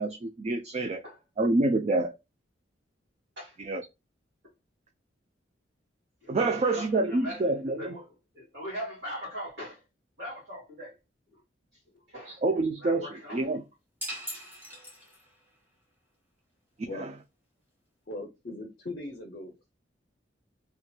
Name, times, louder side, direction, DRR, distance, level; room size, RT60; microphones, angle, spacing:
voice 1, 0.0-1.0 1.4-2.2 3.6-3.8 6.3-7.9 12.3-13.6 16.9-17.1, right 2 dB, 35° right, 0.3 m, -27 dB
voice 2, 0.9-1.2 3.4-3.6 6.2-9.8 10.2-11.0 11.3-11.4 12.1-13.6, equal, 65° right, 2.1 m, -41 dB
sound 1, 14.0-15.5, equal, 10° right, 1.0 m, -40 dB
voice 3, 18.1-19.5, left 2 dB, 50° left, 0.6 m, -39 dB
3.3 x 2.9 x 2.2 m
head